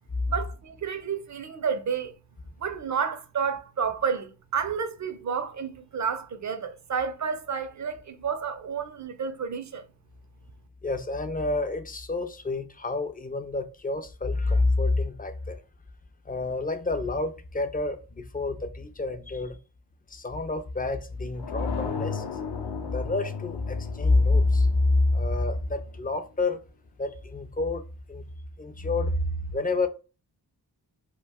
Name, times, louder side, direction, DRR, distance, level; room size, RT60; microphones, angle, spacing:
voice 1, 0.3-2.1 2.6-9.9, right 6 dB, 45° right, 0.5 m, -30 dB
voice 2, 10.8-15.6 16.3-19.6 20.1-22.2 22.9-26.6 27.0-28.2 28.6-29.9, left 2 dB, 20° left, 0.4 m, -27 dB
sound 1, 21.4-26.1, left 6 dB, 70° left, 0.6 m, -36 dB
2.3 x 2.2 x 3.4 m
cardioid pair, 70°, 42 cm